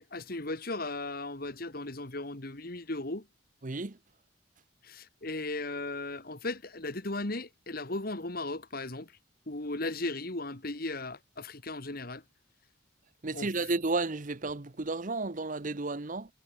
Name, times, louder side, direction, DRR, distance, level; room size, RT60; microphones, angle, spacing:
voice 1, 0.1-3.3 4.8-9.1 9.5-12.2 13.3-13.5, left 2 dB, 50° left, 2.1 m, -36 dB
voice 2, 3.6-3.9 13.2-16.3, right 3 dB, 40° right, 0.9 m, -32 dB
head